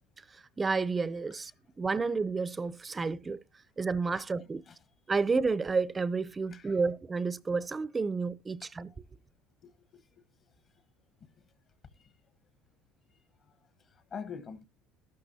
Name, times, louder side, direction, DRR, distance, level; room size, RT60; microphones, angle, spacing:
voice 1, 0.2-1.5 1.8-3.4 3.8-4.6 5.1-8.9, right 4 dB, 20° right, 0.5 m, -31 dB
voice 2, 6.5-6.8 9.6-10.0 12.0-12.1 13.9-14.6, left 6 dB, 40° left, 1.1 m, -44 dB
13.0 x 12.0 x 2.7 m
cardioid pair, 130°, 0 cm